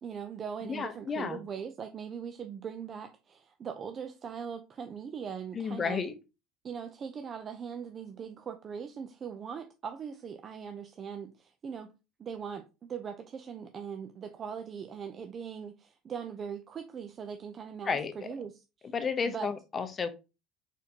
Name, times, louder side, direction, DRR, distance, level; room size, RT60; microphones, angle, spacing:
voice 1, 0.0-6.0 6.6-11.9 12.2-18.9 19.2-19.5, right 7 dB, 35° right, 0.5 m, -40 dB
voice 2, 0.6-1.4 5.5-6.1 17.8-18.3 18.9-20.2, left 5 dB, 30° left, 0.7 m, -32 dB
4.4 x 4.1 x 2.8 m
cardioid pair, 120°, 0 cm